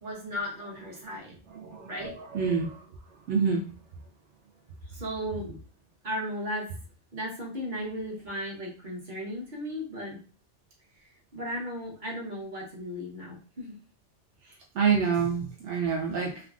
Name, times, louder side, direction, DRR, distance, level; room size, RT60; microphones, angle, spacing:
voice 1, 0.0-1.4 1.9-2.1 4.9-5.6 6.0-6.7 7.1-10.2 11.3-13.7, equal, 45° right, -4 dB, 1.2 m, -35 dB
voice 2, 1.5-2.8 3.3-3.6 14.7-16.4, right 6 dB, 80° right, -2 dB, 0.9 m, -27 dB
3.4 x 2.3 x 2.4 m, 0.37 s
omnidirectional pair, 1.2 m